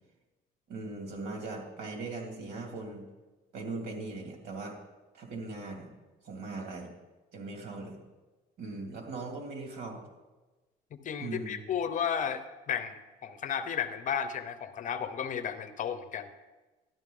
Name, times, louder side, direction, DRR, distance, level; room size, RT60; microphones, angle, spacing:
voice 1, 0.7-3.1 3.5-4.8 5.1-5.9 6.2-6.9 7.3-8.0 8.6-10.0 11.2-11.6, right 3 dB, 75° right, 2 dB, 2.5 m, -39 dB
voice 2, 10.9-16.3, left 8 dB, 50° left, 11 dB, 0.8 m, -33 dB
12.5 x 11.0 x 3.9 m, 1.2 s
cardioid pair, 110°, 17 cm